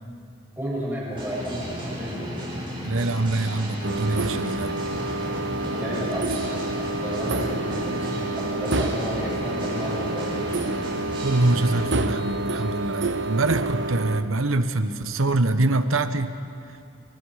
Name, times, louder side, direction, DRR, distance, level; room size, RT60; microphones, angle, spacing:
voice 1, 0.6-2.4 5.7-10.5, equal, 10° right, -6 dB, 7.9 m, -32 dB
sound 1, 1.1-11.9, equal, 25° right, 8.0 m, -34 dB
voice 2, 2.8-4.8 11.2-16.4, right 2 dB, 85° right, 10 dB, 1.2 m, -24 dB
sound 2, 3.8-14.2, right 2 dB, 60° right, 1.0 m, -28 dB
Piano, 6.9-13.2, left 1 dB, 35° left, 5.9 m, -45 dB
30.0 x 25.0 x 5.0 m, 2.4 s
head